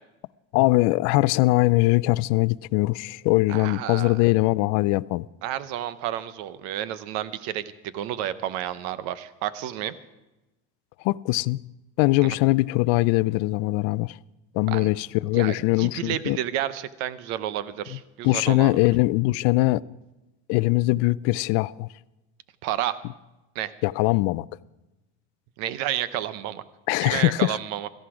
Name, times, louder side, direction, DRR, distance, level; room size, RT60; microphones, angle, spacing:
voice 1, 0.5-5.3 11.0-11.6 12.0-14.2 14.5-16.4 18.2-19.8 20.5-21.9 23.8-24.5 26.9-27.6, left 21 dB, 60° left, 0.4 m, -21 dB
voice 2, 3.5-4.2 5.4-9.9 12.2-12.3 14.7-14.9 15.3-18.7 22.6-23.0 23.5-23.7 25.6-26.6 27.0-27.9, right 12 dB, 65° right, 0.9 m, -31 dB
17.5 x 13.5 x 4.9 m
cardioid pair, 150°, 29 cm